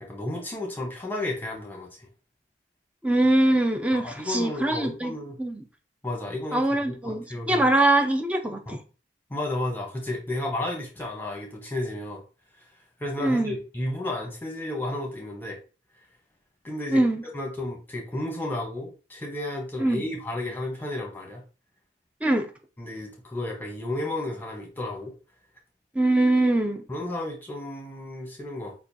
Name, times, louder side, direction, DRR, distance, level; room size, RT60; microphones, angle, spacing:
voice 1, 0.0-2.1 3.9-5.4 6.0-7.7 8.7-8.8 9.3-12.2 13.0-15.6 16.6-17.0 17.3-21.4 22.8-25.1 26.9-28.7, left 1 dB, 10° left, 1.0 m, -32 dB
voice 2, 3.0-5.6 6.5-8.8 13.2-13.6 16.9-17.2 19.8-20.0 22.2-22.5 26.0-26.8, right 1 dB, 5° right, 0.4 m, -23 dB
6.5 x 2.3 x 2.7 m
head